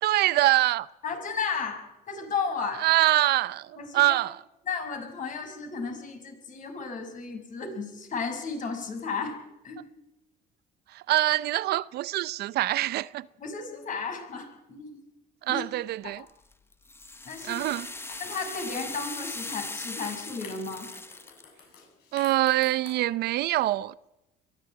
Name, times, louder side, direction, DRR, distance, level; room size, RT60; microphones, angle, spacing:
voice 1, 0.0-0.9 2.8-4.4 10.9-13.3 15.4-16.3 17.4-17.9 22.1-23.9, right 15 dB, 70° right, 0.6 m, -25 dB
voice 2, 1.0-2.8 3.8-4.0 4.6-9.4 9.6-9.8 13.4-15.0 15.5-15.6 17.2-17.7 18.2-20.9, left 5 dB, 50° left, 5.8 m, -34 dB
sound 1, 16.3-21.4, left 2 dB, 15° left, 1.1 m, -39 dB
sound 2, 18.1-19.3 19.7-23.3, left 6 dB, 70° left, 7.5 m, -50 dB
22.5 x 15.0 x 8.7 m
cardioid pair, 110°, 17 cm